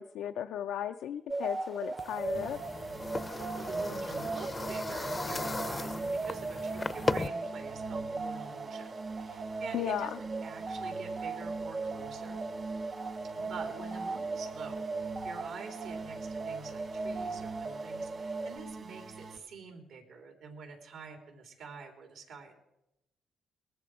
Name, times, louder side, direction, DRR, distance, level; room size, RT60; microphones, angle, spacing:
voice 1, 0.0-2.6 9.7-10.2, left 10 dB, 80° left, 7 dB, 0.5 m, -35 dB
sound 1, 1.3-18.6, right 3 dB, 25° right, 0.7 m, -38 dB
sound 2, 2.0-7.3, left 3 dB, 25° left, 0.6 m, -36 dB
sound 3, 2.3-19.4, right 3 dB, 45° right, 1.5 m, -44 dB
voice 2, 3.3-12.4 13.3-22.5, right 5 dB, 80° right, 3 dB, 3.4 m, -47 dB
19.5 x 14.0 x 4.8 m, 0.89 s
cardioid pair, 100°, 0 cm